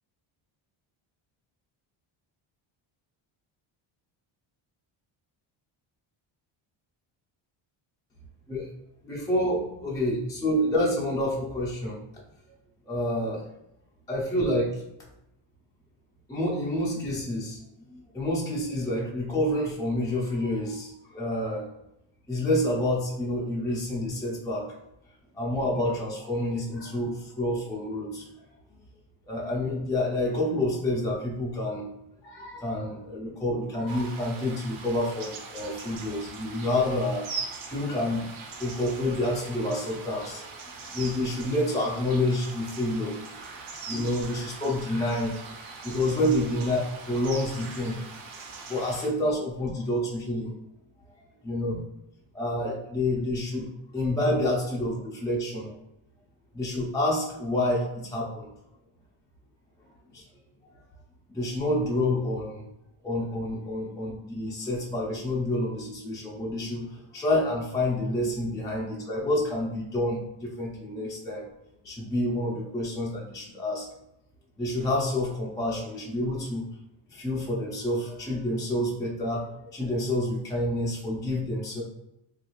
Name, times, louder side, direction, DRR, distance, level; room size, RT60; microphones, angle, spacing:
voice 1, 9.0-12.2 12.9-13.4 14.1-14.8 16.3-17.6 17.9-21.7 22.3-24.6 25.3-28.3 29.3-31.9 32.2-37.4 37.7-38.2 38.6-40.5 40.9-43.2 43.9-45.3 45.8-46.8 47.1-48.0 48.7-50.5 51.4-51.8 52.4-55.7 56.5-58.5 60.1-60.3 61.3-62.7 63.0-71.4 71.8-73.9 74.6-76.6 77.1-81.8, left 1 dB, 10° left, -4 dB, 0.3 m, -28 dB
sound 1, 33.9-49.1, right 4 dB, 80° right, 0.8 m, -41 dB
3.3 x 2.4 x 2.9 m, 0.85 s
cardioid pair, 155°, 49 cm